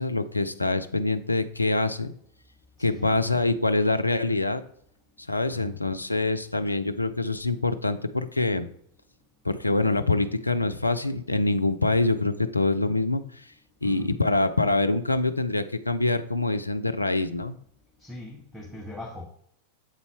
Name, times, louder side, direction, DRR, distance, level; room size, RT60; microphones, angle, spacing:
voice 1, 0.0-2.1 2.8-4.6 5.2-8.7 9.4-13.5 13.8-17.6, left 2 dB, 85° left, 0.5 m, -25 dB
voice 2, 2.8-3.3 5.5-5.8 13.8-14.2 18.0-19.3, left 2 dB, ahead, 1.0 m, -40 dB
8.2 x 4.1 x 4.7 m
figure-of-eight pair, 90°, 0 cm